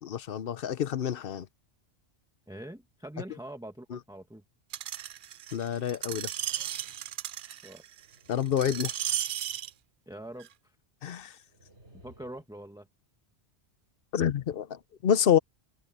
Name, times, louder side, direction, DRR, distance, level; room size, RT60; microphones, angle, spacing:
voice 1, 0.0-1.5 3.9-4.0 5.5-6.3 8.3-9.0 11.0-11.4 14.1-15.4, left 9 dB, 60° left, 0.9 m, -28 dB
voice 2, 2.5-4.4 7.6-7.8 10.1-10.7 11.9-12.9, right 1 dB, 5° right, 1.4 m, -44 dB
Screech, 4.7-9.7 10.4-10.5, right 11 dB, 60° right, 0.6 m, -35 dB
sound 1, 7.8-9.7 11.5-12.5, right 1 dB, 75° right, 5.0 m, -58 dB
omnidirectional pair, 1.1 m